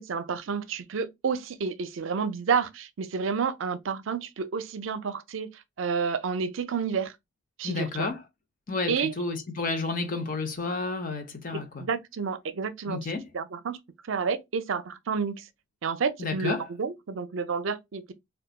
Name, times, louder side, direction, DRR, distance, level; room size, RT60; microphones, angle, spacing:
voice 1, 0.0-5.5 5.8-7.1 7.6-8.1 8.9-9.1 11.5-13.0 13.3-13.8 14.1-15.4 15.8-18.1, right 5 dB, 70° right, 0.5 m, -30 dB
voice 2, 7.6-8.2 8.7-11.9 12.9-13.3 16.2-16.7, left 3 dB, 40° left, 0.7 m, -31 dB
3.9 x 2.3 x 2.2 m
head